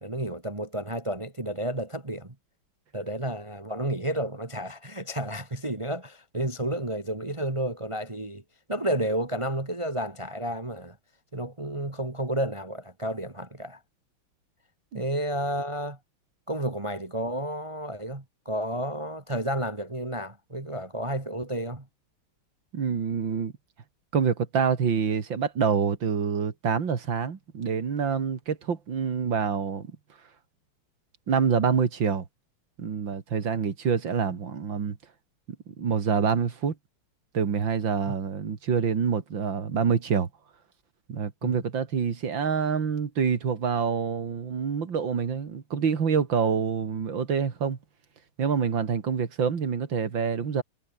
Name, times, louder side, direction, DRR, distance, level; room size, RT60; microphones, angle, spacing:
voice 1, 0.0-2.3 2.9-8.4 8.7-11.0 11.3-13.8 14.9-16.0 16.5-21.9 41.4-41.5, right 1 dB, 15° right, 2.0 m, -31 dB
voice 2, 22.7-23.5 24.1-29.9 31.3-32.3 32.8-35.0 35.7-36.8 37.3-40.3 41.1-47.8 48.4-50.6, right 6 dB, 60° right, 2.9 m, -26 dB
omnidirectional pair, 2.4 m